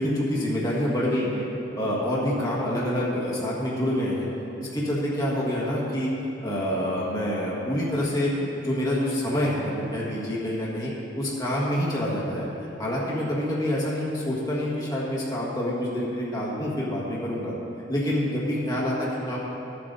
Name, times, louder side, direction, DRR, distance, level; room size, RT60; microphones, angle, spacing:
voice 1, 0.0-1.4 1.7-4.3 4.6-6.1 6.4-8.3 8.6-10.9 11.1-12.5 12.8-17.5 17.9-19.4, equal, 20° left, -6 dB, 1.6 m, -27 dB
13.5 x 7.7 x 4.0 m, 2.9 s
head